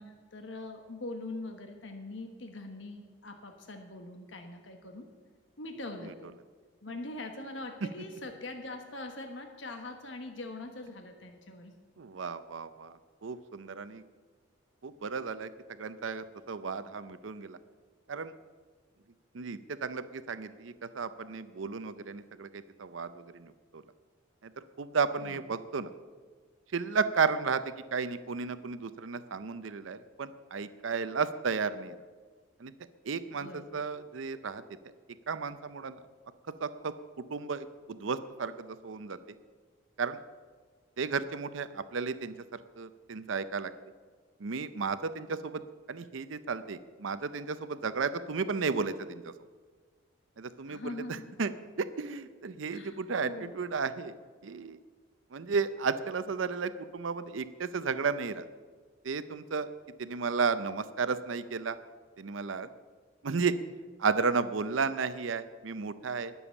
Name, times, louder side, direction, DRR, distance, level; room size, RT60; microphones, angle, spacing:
voice 1, 0.0-5.1 5.6-6.3 6.8-11.7 25.2-25.4 33.3-33.8 50.7-51.2 52.7-53.5, left 2 dB, 65° left, 5 dB, 1.2 m, -42 dB
voice 2, 12.0-14.0 14.8-15.5 15.8-17.6 18.1-18.3 19.3-23.8 24.4-25.9 26.7-32.0 32.6-32.7 33.0-34.6 35.3-36.0 36.6-36.9 37.3-39.2 40.0-40.2 41.0-43.7 44.4-45.6 45.9-49.3 50.4-51.5 51.8-54.2 54.4-54.8 55.3-58.5 59.0-59.7 60.0-61.8 62.2-62.7 63.2-63.6 64.0-66.3, right 5 dB, 75° right, 13 dB, 0.6 m, -33 dB
19.5 x 7.1 x 7.1 m, 1.5 s
head